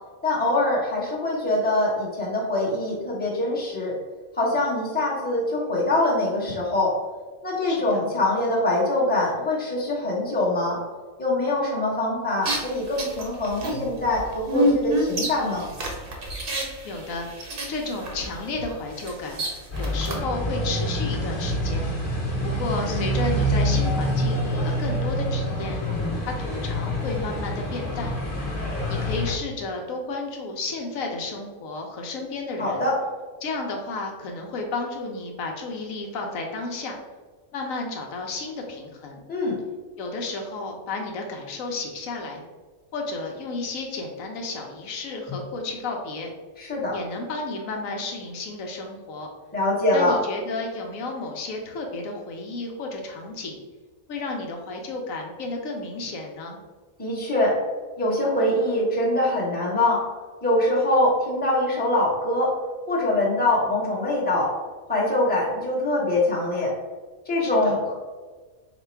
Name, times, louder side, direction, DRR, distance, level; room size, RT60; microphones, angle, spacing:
voice 1, 0.2-4.0 4.4-6.9 7.4-10.8 11.2-15.7 32.6-33.0 39.3-39.6 46.6-47.0 49.5-50.1 57.0-57.6 58.0-60.0 60.4-62.6 62.9-64.5 64.9-66.7 67.2-67.9, left 1 dB, 10° left, -6 dB, 0.9 m, -23 dB
voice 2, 7.6-8.1 16.8-17.3 17.7-19.4 19.8-21.9 22.4-25.8 26.2-28.1 28.9-32.9 33.4-37.0 37.5-39.2 40.0-42.4 42.9-46.3 46.9-49.3 49.9-53.6 54.1-56.6 67.4-67.8, left 3 dB, 75° left, 2 dB, 1.0 m, -32 dB
sound 1, 12.4-20.2, equal, 50° right, 0.8 m, -29 dB
sound 2, 19.7-29.3, equal, 40° left, 1.1 m, -26 dB
4.1 x 2.2 x 4.4 m, 1.4 s
omnidirectional pair, 1.5 m